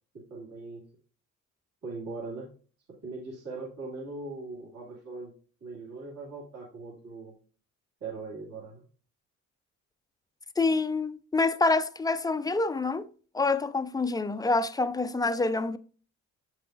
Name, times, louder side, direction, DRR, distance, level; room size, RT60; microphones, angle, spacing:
voice 1, 0.3-0.8 1.8-2.5 3.0-5.3 5.6-7.3 8.0-8.8, right 3 dB, 60° right, 2.3 m, -40 dB
voice 2, 10.6-13.1 13.3-15.8, left 3 dB, 15° left, 0.4 m, -27 dB
7.8 x 6.0 x 2.5 m
cardioid pair, 90°, 30 cm